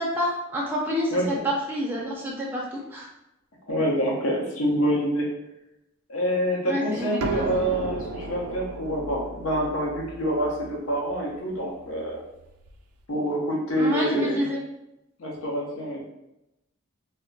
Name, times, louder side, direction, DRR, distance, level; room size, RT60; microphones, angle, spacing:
voice 1, 0.0-3.1 6.7-7.6 13.8-14.6, equal, 10° right, -3 dB, 0.4 m, -28 dB
voice 2, 3.7-5.3 6.1-12.2 13.1-14.5 15.2-16.1, equal, 75° left, -2 dB, 0.7 m, -26 dB
sound 1, 7.2-12.8, right 3 dB, 90° right, 0.3 m, -35 dB
2.2 x 2.1 x 3.8 m, 0.89 s
head